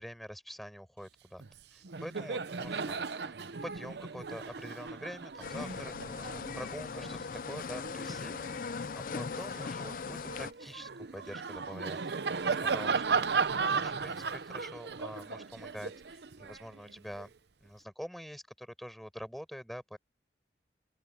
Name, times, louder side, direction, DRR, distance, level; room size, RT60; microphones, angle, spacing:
voice 1, 0.0-1.4 1.7-3.3 3.6-8.7 9.1-17.3 17.6-20.0, equal, ahead, 4.8 m, -46 dB
Laughter, 1.4-1.6 1.8-8.6 9.1-17.3, right 5 dB, 70° right, 0.7 m, -36 dB
Insect, 3.0-3.1 3.3-14.3, left 3 dB, 70° left, 6.6 m, -63 dB
sound 1, 5.4-10.5, left 5 dB, 50° left, 0.4 m, -39 dB
open air
head